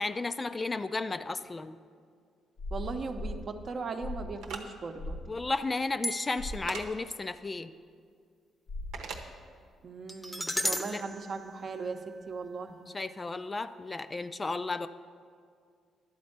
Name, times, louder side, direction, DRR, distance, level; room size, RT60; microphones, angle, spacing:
voice 1, 0.0-1.8 5.3-7.7 10.8-11.0 12.9-14.9, left 3 dB, 25° left, 11 dB, 0.3 m, -33 dB
sound 1, 2.6-3.4 4.0-4.4 5.0-5.3 6.4-6.7 8.7-9.1, left 1 dB, 65° left, 0.9 m, -38 dB
voice 2, 2.7-5.2 9.8-12.9, right 4 dB, 50° right, 6 dB, 0.7 m, -38 dB
sound 2, 4.4-4.6 6.7-6.9 8.9-9.2, right 5 dB, 85° right, 0.8 m, -39 dB
sound 3, 6.0-6.7 10.1-12.3, equal, 5° left, 0.7 m, -36 dB
11.5 x 4.3 x 7.8 m, 2.1 s
cardioid pair, 90°, 0 cm